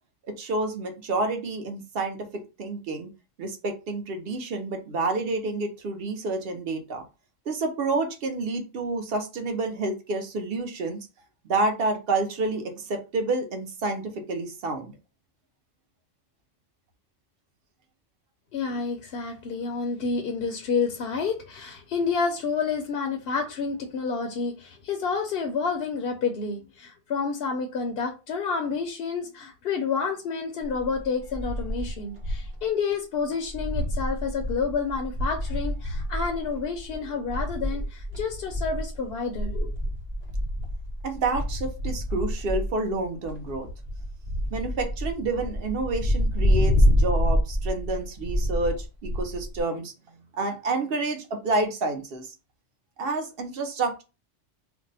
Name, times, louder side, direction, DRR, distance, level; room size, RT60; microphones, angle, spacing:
voice 1, 0.4-3.1 3.4-7.0 7.5-11.1 11.4-14.9 41.0-43.7 44.5-49.9 50.3-52.3 53.0-54.0, right 3 dB, 55° right, 0.8 m, -29 dB
voice 2, 18.5-39.7, left 5 dB, 60° left, 0.7 m, -29 dB
sound 1, 30.6-32.6 32.9-33.0 33.3-49.6, equal, 30° right, 1.0 m, -28 dB
2.6 x 2.1 x 4.0 m
omnidirectional pair, 1.3 m